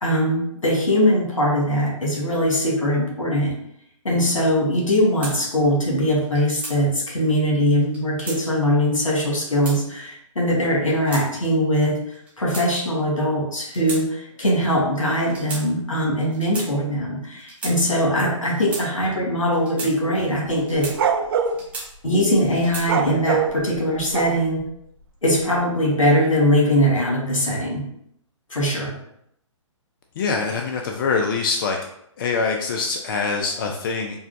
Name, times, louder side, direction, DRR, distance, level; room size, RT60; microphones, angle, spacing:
voice 1, 0.0-3.5 4.0-20.9 22.0-24.6 25.2-27.9 28.5-28.9, equal, 85° left, -2 dB, 1.4 m, -21 dB
sound 1, 5.2-5.4 6.2-6.8 7.8-8.4 9.2-9.8 10.6-11.2 12.1-13.0 13.7-14.0 14.3-14.5 15.3-15.6 16.3-16.7 17.4-17.8 18.4-18.9 19.5-19.9 20.6-21.0 21.4-22.1 22.5-22.9, right 3 dB, 10° right, 0.8 m, -34 dB
sound 2, 20.5-21.6 22.8-24.6, right 7 dB, 45° right, 0.4 m, -23 dB
voice 2, 30.2-31.9 32.2-34.2, left 4 dB, 45° left, 2 dB, 0.4 m, -24 dB
4.3 x 2.2 x 2.5 m, 0.73 s
figure-of-eight pair, 130°, 16 cm